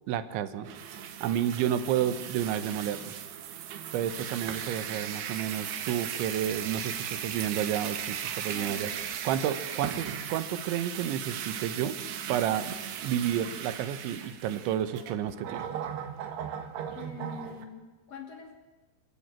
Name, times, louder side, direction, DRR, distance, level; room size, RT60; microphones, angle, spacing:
voice 1, 0.1-0.7 1.2-3.1 3.9-8.9 9.2-12.0 12.3-12.7 13.0-15.6, right 10 dB, 90° right, 12 dB, 3.6 m, -30 dB
sound 1, 0.6-17.7, right 9 dB, 70° right, 3.4 m, -37 dB
voice 2, 8.5-9.4 9.9-10.0 16.9-18.5, left 5 dB, 40° left, 3 dB, 3.3 m, -45 dB
28.0 x 14.5 x 9.1 m, 1.2 s
omnidirectional pair, 5.1 m